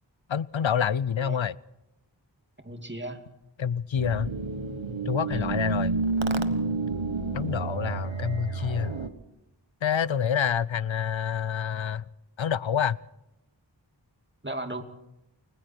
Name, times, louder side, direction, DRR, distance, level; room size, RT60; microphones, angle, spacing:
voice 1, 0.3-1.5 3.6-4.3 5.1-5.9 7.3-9.0 9.8-12.0 12.4-13.0, left 8 dB, 75° left, 20 dB, 0.7 m, -27 dB
voice 2, 2.6-3.2 5.3-5.6 14.4-14.8, right 1 dB, 25° right, 6 dB, 2.6 m, -36 dB
sound 1, 4.0-9.1, right 3 dB, 80° right, 1.5 m, -29 dB
29.0 x 20.5 x 4.5 m, 0.88 s
wide cardioid pair, 40°, 46 cm